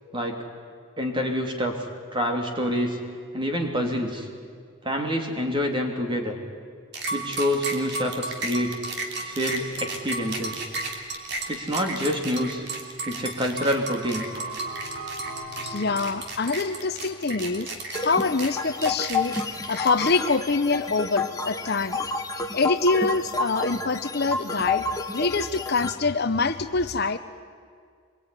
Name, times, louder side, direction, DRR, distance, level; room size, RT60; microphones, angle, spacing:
voice 1, 0.1-0.4 1.0-1.7 2.1-3.0 3.3-4.3 4.8-6.3 7.1-8.8 9.2-10.6 11.5-12.6 13.1-14.2, equal, 20° right, 3 dB, 3.0 m, -27 dB
sound 1, 6.9-20.3, right 3 dB, 50° right, 3.2 m, -33 dB
sound 2, 9.2-11.8 12.2-12.3 12.6-12.7 14.0-15.9, equal, 70° right, 7.2 m, -41 dB
voice 2, 15.6-17.7 18.0-19.4 19.7-22.0 22.5-24.9 25.1-27.2, left 4 dB, 45° left, 10 dB, 0.8 m, -25 dB
sound 3, 17.9-25.9, left 3 dB, 15° left, 1.5 m, -30 dB
25.0 x 22.5 x 9.9 m, 2.1 s
head